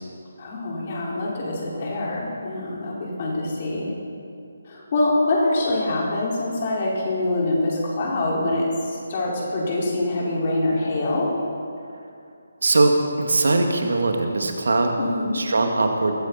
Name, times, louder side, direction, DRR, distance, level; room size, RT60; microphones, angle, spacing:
voice 1, 0.4-3.9 4.6-11.3 15.0-15.4, left 2 dB, 35° left, -4 dB, 4.9 m, -25 dB
voice 2, 12.6-15.0 15.3-16.1, right 2 dB, 60° right, 3 dB, 2.2 m, -20 dB
21.5 x 15.5 x 4.3 m, 2.5 s
figure-of-eight pair, 145°, 0 cm